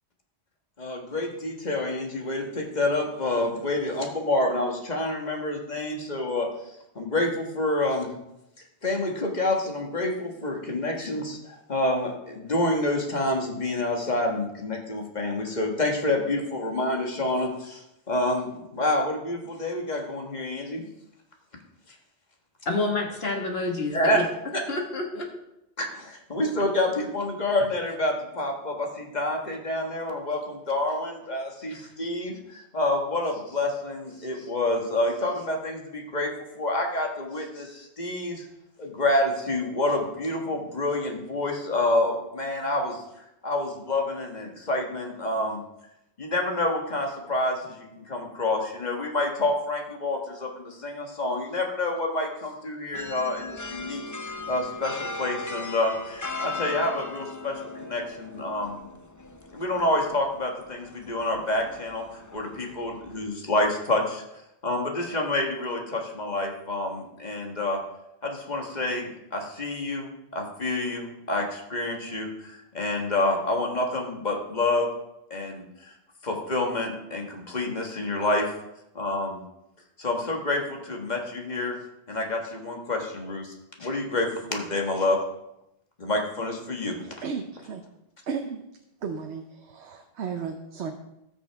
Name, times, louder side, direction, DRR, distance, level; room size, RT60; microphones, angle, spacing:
voice 1, 0.8-6.5 7.0-8.1 8.8-20.8 23.9-24.2 24.5-24.6 25.8-38.5 38.8-45.6 46.2-54.0 54.5-58.9 59.5-62.0 62.3-64.2 64.6-67.8 68.2-74.9 75.3-75.9 76.2-78.5 79.0-79.4 80.0-81.8 82.1-85.2 86.0-87.0, left 2 dB, 40° left, 1 dB, 1.6 m, -28 dB
voice 2, 22.7-24.3 24.7-25.3, left 2 dB, 65° left, 1 dB, 1.9 m, -28 dB
sound 1, 52.9-63.2, left 3 dB, 20° left, 0.6 m, -38 dB
voice 3, 87.0-87.8 88.3-88.6 89.0-90.9, right 6 dB, 85° right, 5 dB, 1.1 m, -34 dB
18.5 x 6.2 x 3.5 m, 0.85 s
omnidirectional pair, 1.1 m